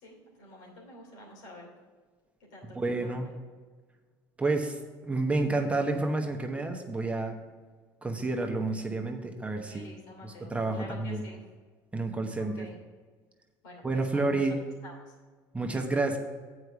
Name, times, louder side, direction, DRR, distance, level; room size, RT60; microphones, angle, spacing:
voice 1, 0.0-1.7 2.5-3.2 9.7-11.4 12.4-12.8 13.6-14.4 14.8-14.9, left 2 dB, 90° left, -2 dB, 2.8 m, -48 dB
voice 2, 2.7-3.3 4.4-4.8 5.0-7.4 8.0-9.9 10.2-11.2 11.9-12.7 13.8-14.6 15.5-16.2, right 2 dB, 15° right, 3 dB, 1.0 m, -29 dB
7.7 x 4.9 x 6.9 m, 1.4 s
supercardioid pair, 95°, 9 cm